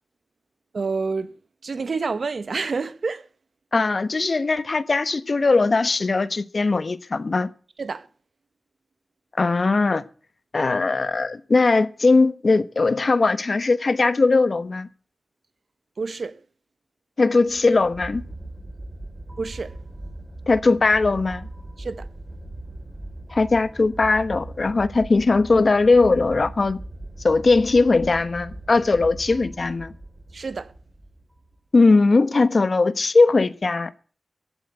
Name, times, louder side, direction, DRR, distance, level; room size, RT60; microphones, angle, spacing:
voice 1, 0.7-1.3 1.6-3.3 7.8-8.1 16.0-16.4 19.4-19.8 21.8-22.1 30.3-30.7, right 4 dB, 75° right, 1.0 m, -28 dB
voice 2, 3.7-7.5 9.4-10.0 10.5-14.9 17.2-18.2 20.5-21.5 23.3-26.8 27.2-29.9 31.7-33.9, left 3 dB, 65° left, 1.2 m, -19 dB
sound 1, 17.4-31.6, right 1 dB, 25° right, 3.2 m, -39 dB
15.0 x 8.0 x 9.8 m
cardioid pair, 40°, 0 cm